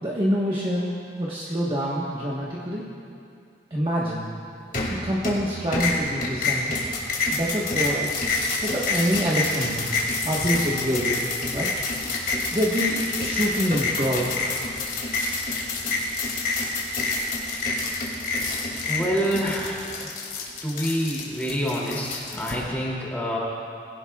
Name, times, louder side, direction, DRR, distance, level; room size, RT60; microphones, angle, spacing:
voice 1, 0.0-2.9 3.7-4.2 4.9-6.7 7.3-8.2 8.6-9.9 10.2-11.7 12.5-14.6, equal, 30° right, -6 dB, 1.3 m, -26 dB
sound 1, 4.7-5.4 5.7-22.5, left 3 dB, 50° left, 2.5 m, -27 dB
voice 2, 18.9-19.8 20.6-23.4, equal, 10° left, -5 dB, 2.7 m, -27 dB
22.0 x 16.5 x 2.4 m, 2.4 s
head